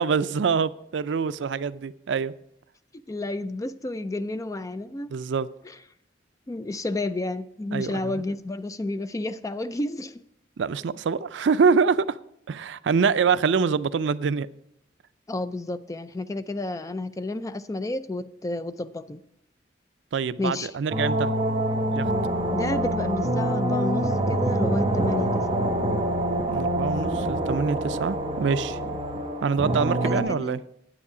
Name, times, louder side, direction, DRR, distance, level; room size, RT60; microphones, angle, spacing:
voice 1, 0.0-2.3 5.1-5.5 7.7-8.2 10.6-12.2 12.5-14.5 20.1-21.3 21.9-22.1 26.5-28.8 29.4-30.6, right 5 dB, 75° right, 0.4 m, -25 dB
voice 2, 3.1-5.1 6.5-10.2 15.3-19.2 20.4-20.7 22.5-25.6 28.7-28.9 30.0-30.6, left 2 dB, 20° left, 0.4 m, -31 dB
sound 1, 20.9-30.2, right 1 dB, 30° right, 1.2 m, -26 dB
9.8 x 8.4 x 4.9 m
head